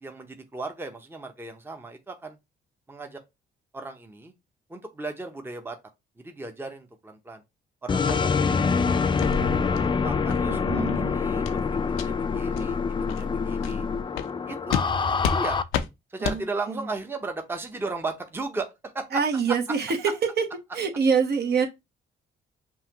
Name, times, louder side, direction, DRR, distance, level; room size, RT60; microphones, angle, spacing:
voice 1, 0.0-2.4 2.9-3.2 3.7-4.3 4.7-5.8 6.2-7.4 7.8-9.5 10.0-11.6 11.9-13.9 14.5-14.8 15.2-15.6 16.1-19.2 19.5-19.6, right 3 dB, 10° right, 0.7 m, -36 dB
sound 1, 7.9-15.6, left 5 dB, 25° left, 0.3 m, -25 dB
sound 2, 8.1-8.2 8.6-8.8 9.2-9.3 9.7-9.9 10.3-10.4 10.8-11.0 11.4-11.6 11.9-12.1 12.5-12.6 13.1-13.2 13.6-13.7 14.1-14.3 14.7-14.9 15.2-15.4 15.7-15.9 16.2-16.4, left 9 dB, 90° left, 0.5 m, -30 dB
voice 2, 10.5-11.1 16.2-16.8 19.1-20.4 20.7-21.7, right 6 dB, 55° right, 1.0 m, -25 dB
5.5 x 2.4 x 2.9 m
cardioid pair, 90°, 20 cm